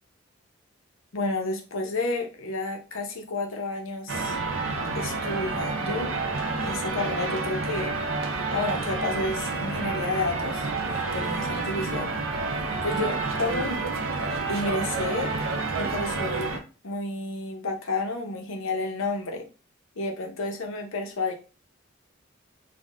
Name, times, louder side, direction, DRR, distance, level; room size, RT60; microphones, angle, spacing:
voice 1, 1.1-4.4 4.9-6.1 6.6-7.9 8.5-12.1 12.8-13.8 14.5-15.3 15.7-19.5 20.0-21.3, left 2 dB, 75° left, 3 dB, 0.7 m, -31 dB
sound 1, 4.1-16.6, right 3 dB, 75° right, 0.5 m, -29 dB
3.4 x 2.1 x 2.4 m, 0.32 s
head